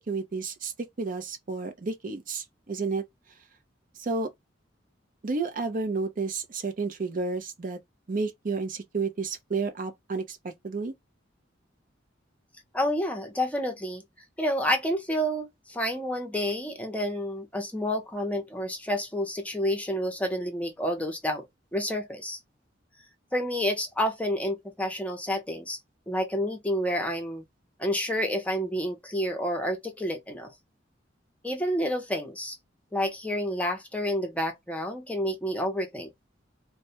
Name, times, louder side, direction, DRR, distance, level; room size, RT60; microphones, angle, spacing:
voice 1, 0.0-3.0 4.0-4.3 5.2-7.8 8.1-10.9, right 4 dB, 45° right, 0.6 m, -31 dB
voice 2, 12.7-14.0 14.4-21.4 21.7-22.4 23.3-25.8 26.1-27.4 27.8-30.5 31.4-32.6 32.9-36.1, equal, 10° left, 0.6 m, -29 dB
2.2 x 2.1 x 2.8 m
head